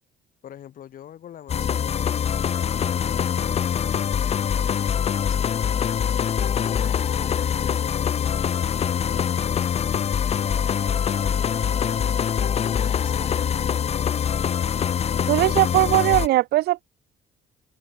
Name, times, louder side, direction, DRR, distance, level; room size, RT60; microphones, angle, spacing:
voice 1, 0.4-6.0 6.6-7.2 7.6-9.7 10.3-15.0 15.6-16.0, left 10 dB, 55° left, 2.6 m, -45 dB
sound 1, 1.5-16.3, left 8 dB, 40° left, 0.8 m, -24 dB
sound 2, 10.4-15.2, right 6 dB, 35° right, 7.8 m, -47 dB
voice 2, 15.3-16.8, right 16 dB, 70° right, 0.6 m, -19 dB
cardioid pair, 110°, 17 cm